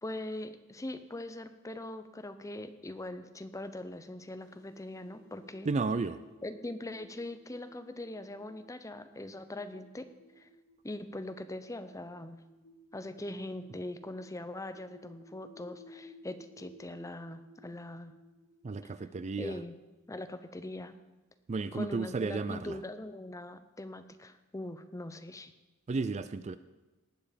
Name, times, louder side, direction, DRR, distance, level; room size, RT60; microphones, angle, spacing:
voice 1, 0.0-5.7 6.4-10.1 10.4-10.5 10.8-12.4 12.9-18.1 18.8-19.1 19.4-19.8 20.1-20.9 21.7-25.5, left 1 dB, 15° left, 10 dB, 0.7 m, -41 dB
sound 1, 4.4-20.7, equal, 85° left, 1.3 m, -58 dB
voice 2, 5.7-6.2 18.6-19.6 21.5-22.8 25.9-26.6, right 4 dB, 30° right, 13 dB, 0.4 m, -33 dB
19.0 x 7.0 x 5.1 m, 1.1 s
head